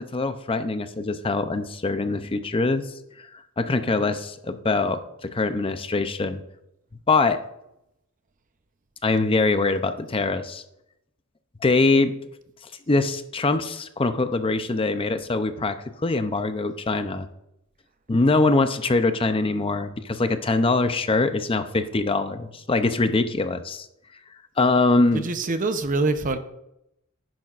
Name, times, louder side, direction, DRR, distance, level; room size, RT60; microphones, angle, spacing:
voice 1, 0.0-3.3 3.6-6.4 7.1-7.4 9.0-10.6 11.6-12.1 12.9-17.3 18.1-23.9 24.6-25.2, left 3 dB, 25° left, 9 dB, 0.5 m, -23 dB
voice 2, 25.1-26.4, right 3 dB, 40° right, 9 dB, 0.7 m, -24 dB
10.5 x 10.5 x 2.5 m, 0.82 s
head